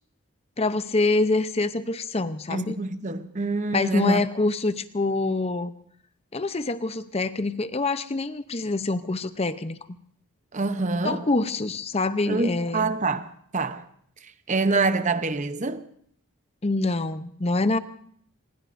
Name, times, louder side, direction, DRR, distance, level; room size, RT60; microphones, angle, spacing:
voice 1, 0.6-2.8 3.7-5.7 6.3-9.8 11.0-12.9 16.6-17.8, left 2 dB, 25° left, 0.7 m, -25 dB
voice 2, 2.5-4.2 10.5-11.3 12.3-13.9 14.5-15.9, right 3 dB, 35° right, 0.8 m, -26 dB
25.5 x 21.0 x 2.6 m
head